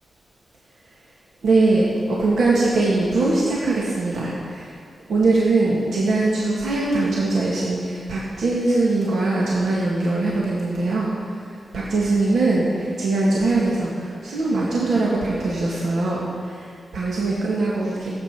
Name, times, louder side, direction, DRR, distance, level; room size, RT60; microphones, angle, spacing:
voice 1, 1.4-4.8 5.1-11.5 11.7-18.1, right 2 dB, 90° right, -6 dB, 2.0 m, -21 dB
15.0 x 8.9 x 6.1 m, 2.2 s
wide cardioid pair, 140°, 0 cm